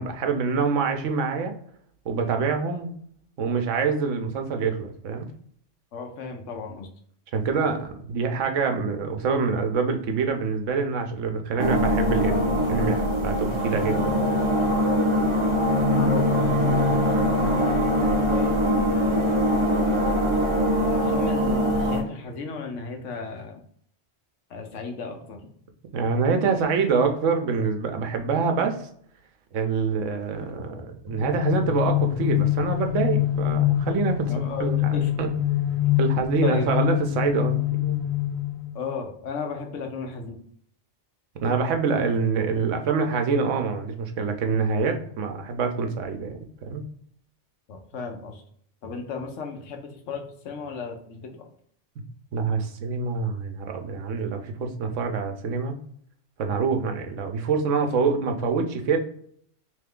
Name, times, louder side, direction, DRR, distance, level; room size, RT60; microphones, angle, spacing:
voice 1, 0.0-1.5 2.1-2.9 3.4-5.3 7.3-14.3 25.9-28.9 29.5-35.3 36.0-38.0 41.4-46.8 52.3-55.8 56.4-59.0, right 5 dB, 85° right, 5 dB, 1.0 m, -26 dB
voice 2, 5.9-6.9 15.9-19.7 20.8-23.6 24.5-25.5 34.3-35.1 36.4-36.7 38.7-40.4 47.7-48.4 48.8-51.3, left 4 dB, 80° left, 4 dB, 1.1 m, -34 dB
sound 1, 11.6-22.0, equal, 35° right, 0.5 m, -22 dB
sound 2, 31.1-39.0, left 13 dB, 15° left, 1.0 m, -25 dB
3.3 x 3.1 x 3.6 m, 0.63 s
omnidirectional pair, 1.3 m